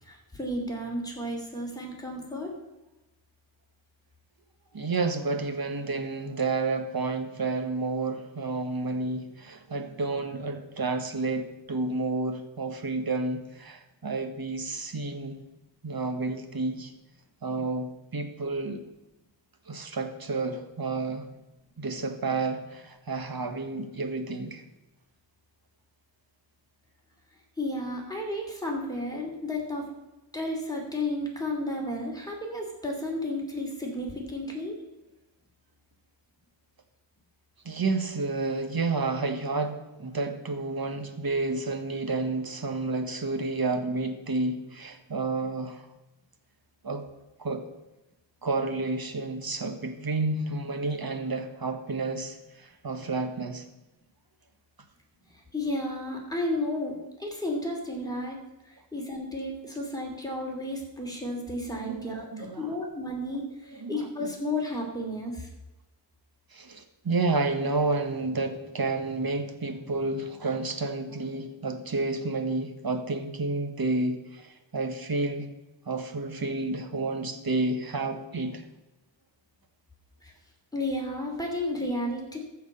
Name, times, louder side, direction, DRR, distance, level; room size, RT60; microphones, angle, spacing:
voice 1, 0.0-2.5 27.6-29.9 30.3-34.8 55.5-58.4 58.9-65.5 80.2-80.3 80.7-82.4, left 1 dB, 10° left, -1 dB, 2.9 m, -32 dB
voice 2, 4.7-15.4 15.8-16.9 17.4-18.8 19.7-21.3 21.8-24.6 37.6-45.9 46.8-47.0 47.4-47.6 48.4-53.6 61.8-62.8 63.7-64.3 66.5-75.5 75.9-78.6, right 3 dB, 55° right, 7 dB, 1.4 m, -30 dB
14.0 x 4.7 x 6.8 m, 1.0 s
wide cardioid pair, 75°, 44 cm